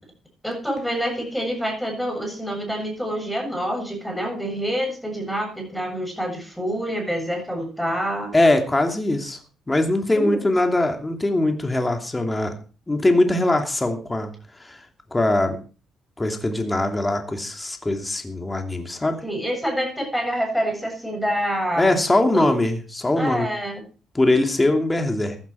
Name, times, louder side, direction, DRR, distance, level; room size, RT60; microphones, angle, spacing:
voice 1, 0.4-8.3 10.1-10.5 19.2-21.9 22.3-22.5 23.2-23.8, equal, ahead, 3 dB, 7.4 m, -27 dB
voice 2, 8.3-9.4 9.7-12.5 12.9-14.3 14.6-14.8 15.1-15.6 16.2-19.2 21.8-23.5 24.1-25.4, left 2 dB, 15° left, 5 dB, 2.8 m, -21 dB
15.0 x 11.5 x 4.8 m, 0.36 s
cardioid pair, 90°, 0 cm